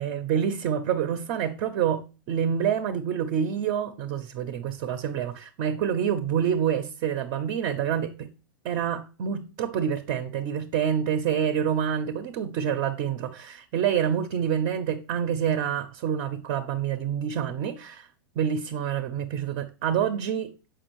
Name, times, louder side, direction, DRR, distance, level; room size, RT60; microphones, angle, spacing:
voice 1, 0.0-8.3 8.6-18.1 18.4-20.5, right 8 dB, 45° right, 0.6 m, -27 dB
6.7 x 4.9 x 3.0 m
hypercardioid pair, 110°, 12 cm